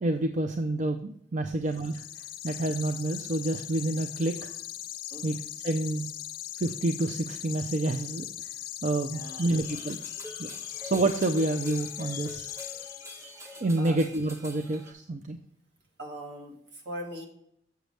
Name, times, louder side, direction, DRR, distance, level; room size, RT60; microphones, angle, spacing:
voice 1, 0.0-4.5 5.2-5.4 5.6-6.0 6.6-8.5 8.8-10.0 10.4-10.5 10.8-12.5 13.6-15.4, right 2 dB, 45° right, 7 dB, 0.5 m, -28 dB
sound 1, 1.7-13.5, left 13 dB, 55° left, 0.5 m, -40 dB
voice 2, 9.1-9.5 13.8-14.0 16.0-17.3, equal, 65° right, 1 dB, 1.9 m, -40 dB
sound 2, 9.2-14.9, left 1 dB, 15° right, 1.0 m, -45 dB
7.9 x 6.7 x 3.2 m, 0.71 s
head